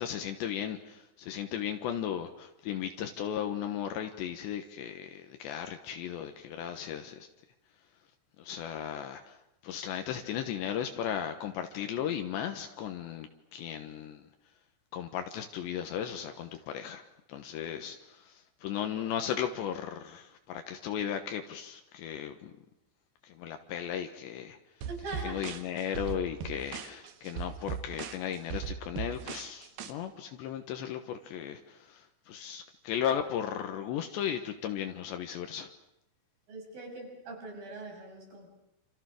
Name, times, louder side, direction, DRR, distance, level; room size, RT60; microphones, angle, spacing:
voice 1, 0.0-7.3 8.4-9.4 9.6-14.3 14.9-17.0 17.3-22.5 23.2-24.9 25.2-35.7, left 9 dB, 75° left, 6 dB, 3.4 m, -36 dB
sound 1, 24.8-29.9, right 7 dB, 65° right, 3.4 m, -39 dB
voice 2, 24.9-25.5 36.5-38.5, right 2 dB, 50° right, 1 dB, 8.3 m, -42 dB
28.5 x 28.0 x 6.5 m, 0.83 s
omnidirectional pair, 5.4 m